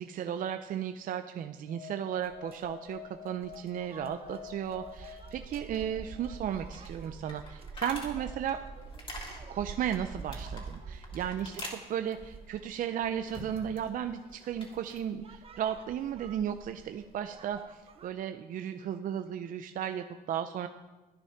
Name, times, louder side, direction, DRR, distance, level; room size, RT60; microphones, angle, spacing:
voice 1, 0.0-8.6 9.5-20.7, right 9 dB, 55° right, 8 dB, 0.6 m, -35 dB
sound 1, 1.7-6.8, left 11 dB, 70° left, 0.5 m, -49 dB
sound 2, 2.2-18.1, right 5 dB, 35° right, 0.9 m, -47 dB
sound 3, 5.4-13.9 14.2-15.0, left 2 dB, 30° left, 2.9 m, -47 dB
12.5 x 9.8 x 5.8 m, 1.2 s
cardioid pair, 110°, 17 cm